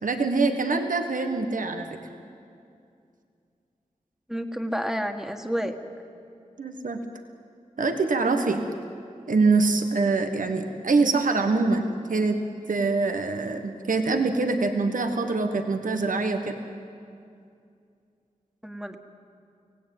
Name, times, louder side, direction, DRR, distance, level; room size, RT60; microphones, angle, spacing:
voice 1, 0.0-1.9 6.6-7.0 7.8-8.6 9.3-16.6, right 3 dB, 75° right, 6 dB, 1.4 m, -24 dB
voice 2, 4.3-5.7 18.6-19.0, equal, 5° right, 6 dB, 1.8 m, -30 dB
24.5 x 17.0 x 9.2 m, 2.5 s
cardioid pair, 50°, 14 cm